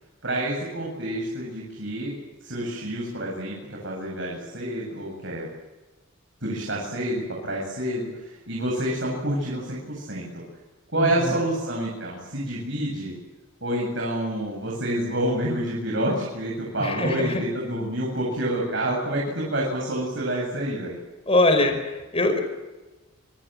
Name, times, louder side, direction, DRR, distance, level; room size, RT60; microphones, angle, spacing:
voice 1, 0.2-2.1 2.4-5.5 6.4-10.4 10.9-13.1 13.6-21.0, right 1 dB, 60° right, -2 dB, 7.9 m, -28 dB
voice 2, 11.0-11.3 16.8-17.4 21.3-22.4, left 2 dB, 30° left, 6 dB, 5.1 m, -22 dB
27.5 x 25.0 x 7.7 m, 1.2 s
head